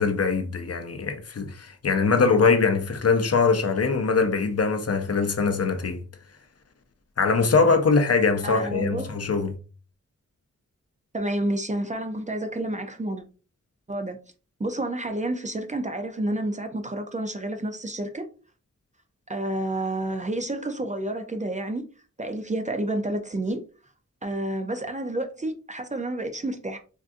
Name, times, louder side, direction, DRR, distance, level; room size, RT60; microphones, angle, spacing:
voice 1, 0.0-6.0 7.2-9.6, left 4 dB, 55° left, 0.6 m, -22 dB
voice 2, 8.4-9.2 11.1-13.2 13.9-14.2 14.6-18.3 19.3-21.8 22.2-23.6 24.2-26.8, right 1 dB, 25° right, 0.4 m, -29 dB
3.5 x 2.5 x 2.5 m
wide cardioid pair, 85°, 30 cm